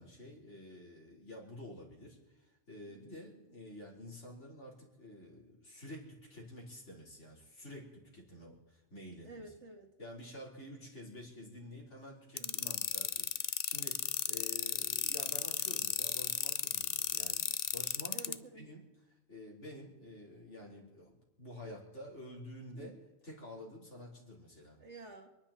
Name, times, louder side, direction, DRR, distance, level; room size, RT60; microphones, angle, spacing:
voice 1, 0.0-9.5 10.0-18.2 18.5-18.8 19.3-22.9 23.2-24.8, left 1 dB, 85° left, -3 dB, 4.7 m, -50 dB
voice 2, 2.9-3.2 9.2-9.9 12.4-12.8 18.1-18.7 22.7-23.0 24.8-25.3, right 3 dB, 75° right, 3 dB, 2.3 m, -51 dB
sound 1, 12.4-18.3, left 8 dB, 50° left, 0.5 m, -34 dB
28.5 x 10.5 x 4.4 m, 1.1 s
omnidirectional pair, 1.2 m